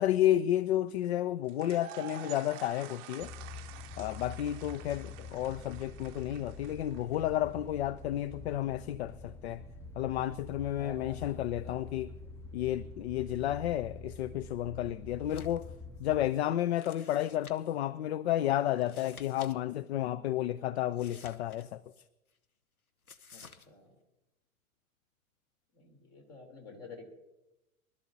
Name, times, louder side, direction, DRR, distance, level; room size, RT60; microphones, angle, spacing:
voice 1, 0.0-3.3 4.0-9.6 9.9-12.1 12.5-15.7 16.0-21.8, left 12 dB, 50° left, 0.5 m, -31 dB
sound 1, 1.5-7.5, right 13 dB, 30° right, 0.7 m, -49 dB
sound 2, 3.2-16.3, left 3 dB, 5° left, 0.7 m, -46 dB
voice 2, 10.7-11.8 15.1-15.4 23.3-24.0 25.7-27.0, left 4 dB, 35° left, 3.4 m, -50 dB
sound 3, 15.2-15.7 16.0-16.1 16.8-17.8 18.8-19.5 19.8-19.9 20.9-22.0 23.1-23.7, left 5 dB, 85° left, 0.9 m, -53 dB
23.5 x 12.5 x 2.7 m
figure-of-eight pair, 90°, 42 cm